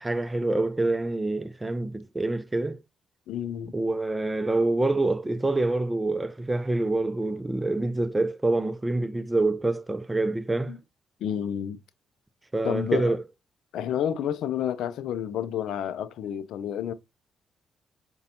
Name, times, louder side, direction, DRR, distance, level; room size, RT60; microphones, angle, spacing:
voice 1, 0.0-2.8 3.7-10.8 12.5-13.2, right 2 dB, 20° right, 0.5 m, -26 dB
voice 2, 3.3-3.7 10.7-10.8 11.2-11.8 12.6-13.2 13.7-16.9, left 9 dB, 75° left, 0.4 m, -30 dB
4.9 x 2.3 x 2.7 m
supercardioid pair, 55°, 0 cm